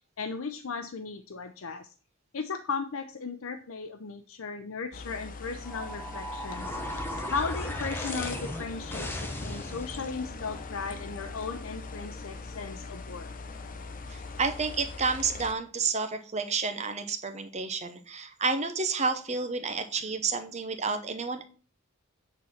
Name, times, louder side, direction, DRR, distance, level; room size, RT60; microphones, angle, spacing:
voice 1, 0.2-1.9 2.3-6.7 7.3-13.3, left 5 dB, 80° left, 8 dB, 0.7 m, -36 dB
sound 1, 4.9-15.5, left 3 dB, 40° left, 0.8 m, -41 dB
sound 2, 5.6-10.2, equal, 10° left, 1.1 m, -37 dB
voice 2, 14.1-21.5, right 4 dB, 35° right, 8 dB, 0.9 m, -30 dB
9.0 x 4.2 x 5.7 m, 0.37 s
head